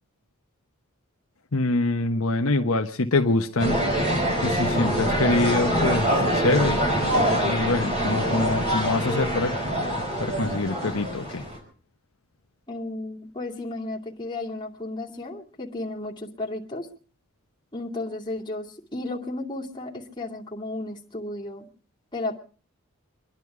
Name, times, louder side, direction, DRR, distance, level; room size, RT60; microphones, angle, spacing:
voice 1, 1.5-3.8 4.4-6.8 7.4-9.5 10.2-11.4, left 2 dB, 70° left, 4 dB, 1.1 m, -25 dB
sound 1, 3.6-11.6, equal, 30° right, 5.0 m, -24 dB
voice 2, 12.7-16.9 17.7-21.7 22.1-22.4, left 2 dB, 20° left, -3 dB, 2.5 m, -33 dB
25.0 x 11.0 x 4.9 m, 0.41 s
head